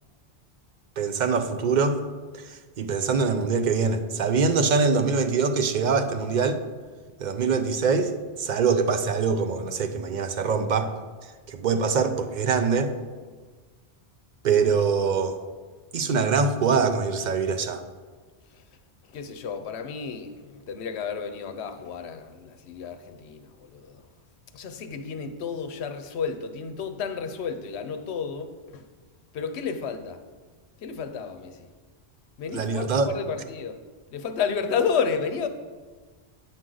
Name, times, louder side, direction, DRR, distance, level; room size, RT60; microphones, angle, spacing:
voice 1, 1.0-2.0 2.5-6.6 7.2-10.9 11.5-12.9 14.4-15.4 15.9-17.8 32.5-33.1, right 5 dB, 55° right, 8 dB, 0.6 m, -24 dB
voice 2, 19.1-24.1 24.5-28.8 29.3-30.2 30.8-31.7 32.4-33.8 34.1-35.5, left 6 dB, 80° left, 9 dB, 0.9 m, -31 dB
8.9 x 6.2 x 3.8 m, 1.4 s
omnidirectional pair, 1.1 m